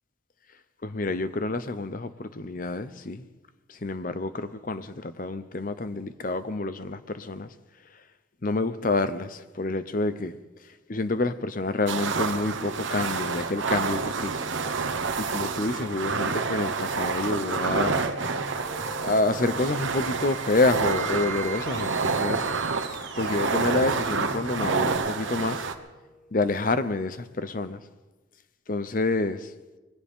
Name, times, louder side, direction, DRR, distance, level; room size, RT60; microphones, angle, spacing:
voice 1, 0.8-3.3 3.7-7.5 8.4-10.4 10.9-14.4 15.1-18.0 19.0-22.5 23.2-25.6 26.3-27.8 28.7-29.5, left 2 dB, 45° left, 0.8 m, -28 dB
sound 1, 11.9-25.7, right 4 dB, 75° right, 1.1 m, -28 dB
sound 2, 17.8-25.0, right 4 dB, 35° right, 5.1 m, -42 dB
Wind instrument woodwind instrument, 18.6-26.6, right 2 dB, ahead, 1.0 m, -50 dB
21.0 x 17.0 x 3.7 m
head